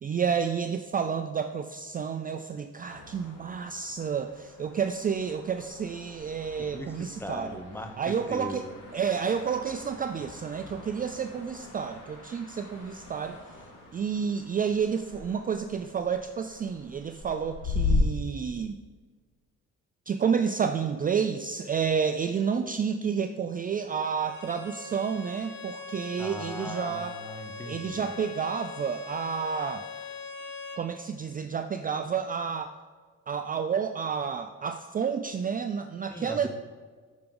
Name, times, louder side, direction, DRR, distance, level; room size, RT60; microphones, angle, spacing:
voice 1, 0.0-7.6 8.0-13.4 13.9-18.8 20.1-27.2 27.7-29.9 30.8-32.7 33.3-36.5, right 6 dB, 30° right, 8 dB, 0.4 m, -30 dB
sound 1, 2.8-17.9, left 5 dB, 90° left, 2.5 m, -40 dB
voice 2, 6.6-8.7 26.2-28.1 36.1-36.5, left 1 dB, 5° left, 5 dB, 0.9 m, -39 dB
Bowed string instrument, 24.0-30.9, left 5 dB, 40° left, 1.1 m, -42 dB
8.7 x 5.9 x 3.9 m, 1.5 s
cardioid pair, 90°, 30 cm